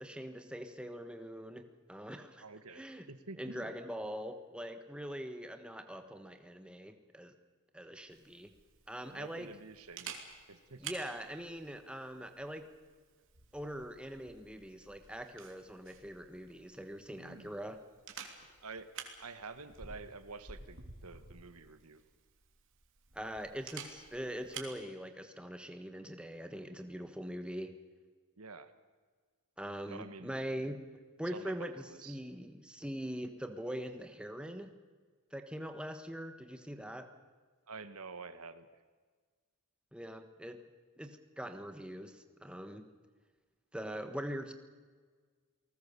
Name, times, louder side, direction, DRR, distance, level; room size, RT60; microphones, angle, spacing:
voice 1, 0.0-1.6 1.9-2.4 2.7-3.1 3.4-7.3 7.7-8.5 8.9-9.5 10.8-12.6 13.5-17.8 23.1-27.7 29.6-30.8 31.2-34.7 35.3-37.1 39.9-40.6 41.0-42.9 43.7-44.5, equal, 5° right, 7 dB, 1.3 m, -42 dB
voice 2, 2.4-3.7 9.1-10.8 17.2-17.5 18.6-18.9 19.2-22.0 28.4-28.7 29.8-30.3 31.3-32.2 37.7-38.8, right 4 dB, 80° right, 11 dB, 1.4 m, -49 dB
Camera, 8.1-24.8, right 6 dB, 60° right, 3.2 m, -52 dB
29.0 x 19.5 x 6.9 m, 1.5 s
head